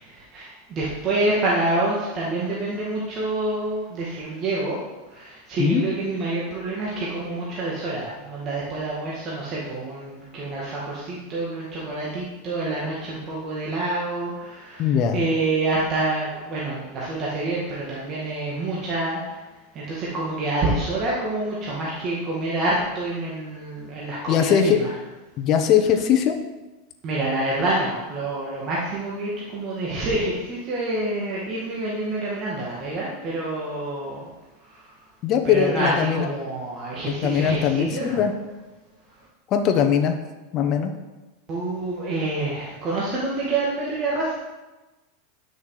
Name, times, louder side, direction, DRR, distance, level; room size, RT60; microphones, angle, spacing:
voice 1, 0.0-4.8 5.1-19.3 19.7-24.9 27.0-34.3 34.6-34.9 35.4-38.2 41.5-44.4, right 2 dB, 30° right, -5 dB, 2.0 m, -27 dB
voice 2, 14.8-15.2 24.3-24.8 25.4-26.3 35.2-36.3 37.0-38.3 39.5-40.2 40.5-40.9, left 8 dB, 35° left, 5 dB, 1.1 m, -20 dB
10.5 x 6.5 x 4.9 m, 1.1 s
supercardioid pair, 145°, 0 cm